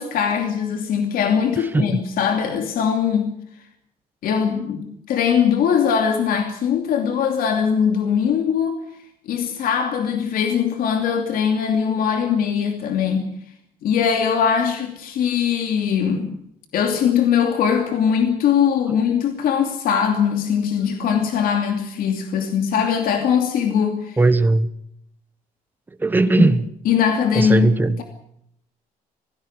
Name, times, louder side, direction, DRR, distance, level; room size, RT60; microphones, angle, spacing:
voice 1, 0.0-3.3 4.2-8.8 9.3-13.3 13.8-16.4 16.7-24.2 26.4-26.5 26.9-27.7, left 7 dB, 75° left, 5 dB, 2.8 m, -21 dB
voice 2, 24.2-24.7 26.0-26.6 27.3-28.0, right 2 dB, 15° right, 11 dB, 1.1 m, -17 dB
19.5 x 16.5 x 9.8 m, 0.72 s
cardioid pair, 175°, 15 cm